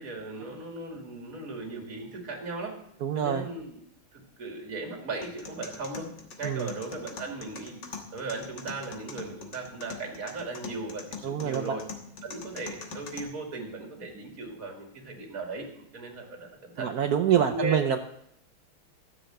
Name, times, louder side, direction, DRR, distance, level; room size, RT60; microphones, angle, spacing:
voice 1, 0.0-2.8 3.1-3.8 4.1-6.1 6.4-11.9 12.2-16.9 17.3-18.0, right 3 dB, 40° right, 2 dB, 2.7 m, -37 dB
voice 2, 3.0-3.5 6.4-6.7 11.2-11.8 16.8-18.0, right 9 dB, 75° right, 7 dB, 0.8 m, -26 dB
sound 1, 5.2-13.2, left 5 dB, 55° left, 1.9 m, -44 dB
13.0 x 7.0 x 7.7 m, 0.72 s
omnidirectional pair, 2.4 m